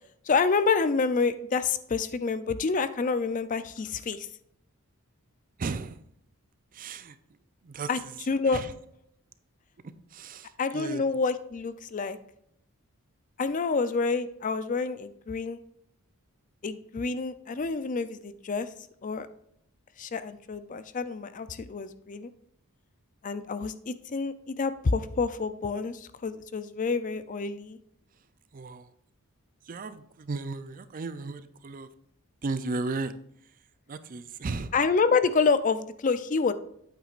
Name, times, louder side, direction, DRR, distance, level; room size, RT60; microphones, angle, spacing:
voice 1, 0.3-4.3 7.9-8.0 8.3-8.6 10.6-12.2 13.4-15.6 16.6-18.7 19.0-19.3 20.0-22.3 23.2-27.8 34.7-36.5, left 4 dB, 35° left, 13 dB, 0.4 m, -28 dB
voice 2, 5.6-6.0 6.7-7.2 7.6-8.2 8.4-8.7 9.8-11.0 28.5-28.9 29.6-31.9 32.4-33.2 33.4-33.6 33.9-34.7, right 3 dB, 40° right, 12 dB, 0.4 m, -35 dB
8.8 x 8.1 x 2.5 m, 0.72 s
head